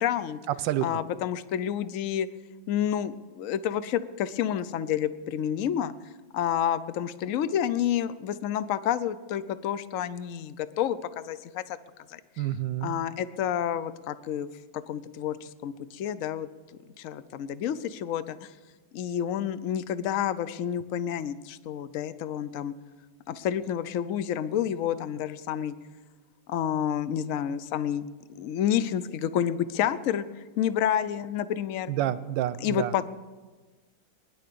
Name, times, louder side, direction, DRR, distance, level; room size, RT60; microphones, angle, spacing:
voice 1, 0.0-0.4 0.8-2.3 2.7-5.9 6.3-11.8 12.1-12.5 12.8-14.5 14.7-16.5 17.0-18.5 18.9-22.7 23.3-25.7 26.5-28.1 28.4-30.3 30.6-31.9 32.6-33.1, left 10 dB, 60° left, 15 dB, 0.8 m, -29 dB
voice 2, 0.6-1.0 12.4-13.0 31.9-33.1, right 12 dB, 85° right, 15 dB, 1.4 m, -29 dB
20.5 x 10.5 x 6.8 m, 1.3 s
omnidirectional pair, 2.0 m